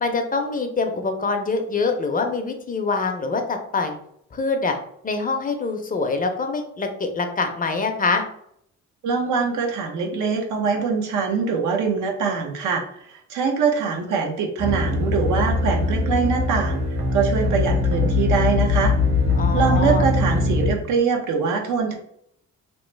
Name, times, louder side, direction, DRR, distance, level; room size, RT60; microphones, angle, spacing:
voice 1, 0.0-4.0 4.3-4.8 5.0-8.2 19.4-20.1, left 4 dB, 30° left, 5 dB, 0.5 m, -24 dB
voice 2, 9.0-12.8 13.1-18.9 19.5-21.9, right 5 dB, 80° right, 2 dB, 0.7 m, -23 dB
sound 1, 14.6-20.7, left 3 dB, 60° right, 1.4 m, -21 dB
3.0 x 2.0 x 3.1 m, 0.70 s
cardioid pair, 90°, 30 cm